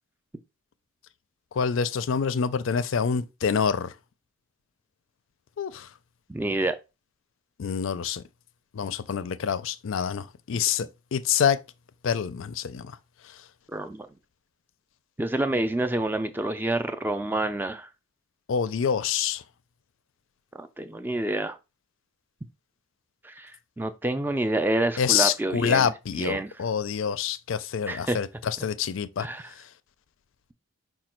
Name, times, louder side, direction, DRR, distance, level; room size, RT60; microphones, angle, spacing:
voice 1, 1.5-3.9 5.6-5.9 7.6-8.2 8.7-11.6 12.0-12.9 18.5-19.4 25.0-29.2, left 7 dB, 70° left, 0.4 m, -26 dB
voice 2, 6.3-6.8 10.5-10.6 13.7-14.1 15.2-17.9 20.6-21.6 23.2-23.5 23.8-25.9 26.2-26.6 27.9-28.2 28.6-28.7 29.2-29.5, right 1 dB, 10° right, 0.3 m, -28 dB
5.1 x 2.3 x 4.3 m
head